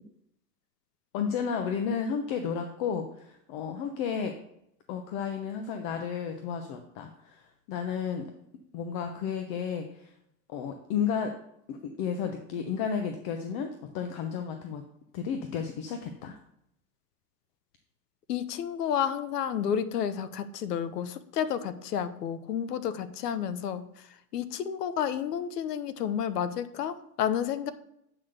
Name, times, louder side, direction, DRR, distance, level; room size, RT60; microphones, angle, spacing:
voice 1, 1.1-4.4 4.9-8.3 8.7-10.1 10.5-11.4 11.7-14.8 15.1-16.4, left 7 dB, 50° left, 6 dB, 1.0 m, -32 dB
voice 2, 18.3-23.8 24.3-27.7, left 8 dB, 90° left, 13 dB, 0.9 m, -31 dB
8.5 x 4.0 x 6.5 m, 0.77 s
hypercardioid pair, 120°, 46 cm